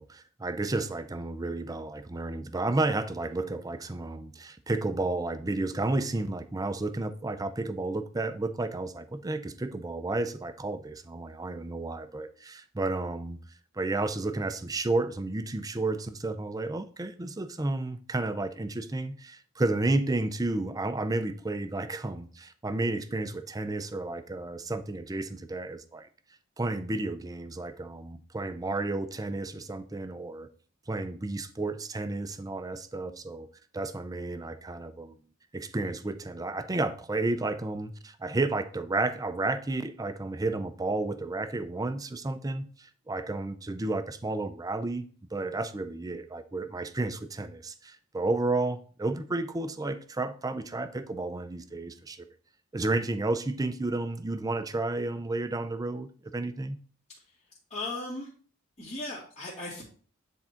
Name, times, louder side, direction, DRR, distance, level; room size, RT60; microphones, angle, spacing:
voice 1, 0.0-13.4 13.7-26.1 26.6-30.5 30.9-33.5 33.7-35.2 35.5-52.3 52.7-56.8, right 2 dB, 15° right, 0.5 m, -32 dB
voice 2, 57.7-58.3 58.8-59.8, left 2 dB, 35° left, 2.2 m, -36 dB
9.7 x 3.6 x 4.4 m
head